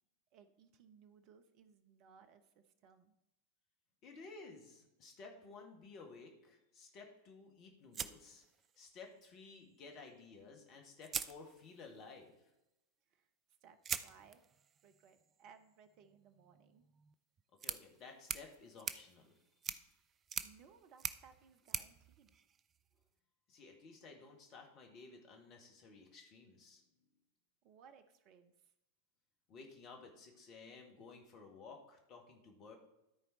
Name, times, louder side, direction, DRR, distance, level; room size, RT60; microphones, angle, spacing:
voice 1, 0.3-3.2 13.1-13.3 13.6-14.4 14.8-16.8 20.1-22.3 27.6-28.7, right 6 dB, 40° right, 9 dB, 0.8 m, -63 dB
voice 2, 4.0-8.4 8.8-12.4 17.6-19.3 23.5-26.8 29.5-32.8, left 4 dB, 35° left, 2 dB, 1.9 m, -55 dB
sound 1, 7.9-9.1 10.4-10.5 11.0-12.0 13.8-23.0, right 7 dB, 25° right, 0.4 m, -46 dB
13.0 x 4.4 x 4.2 m, 0.90 s
figure-of-eight pair, 90°, 0 cm